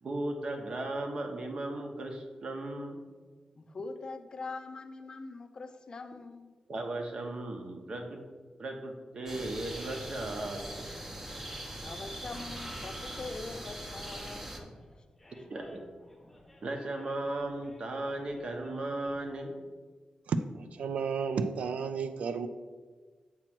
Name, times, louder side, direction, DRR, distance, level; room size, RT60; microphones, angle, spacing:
voice 1, 0.0-3.0 6.7-8.2 8.6-10.9 15.5-15.8 16.6-19.6, right 2 dB, 50° right, 3 dB, 0.9 m, -36 dB
voice 2, 3.6-6.6 11.8-14.8, left 3 dB, 40° left, 8 dB, 0.4 m, -43 dB
sound 1, 9.3-14.6, right 1 dB, 15° right, 0.7 m, -41 dB
Animal, 14.3-19.3, left 1 dB, 5° left, 1.0 m, -57 dB
voice 3, 20.3-22.5, right 5 dB, 90° right, 10 dB, 0.3 m, -32 dB
7.4 x 3.0 x 5.9 m, 1.4 s
wide cardioid pair, 170°, 2 cm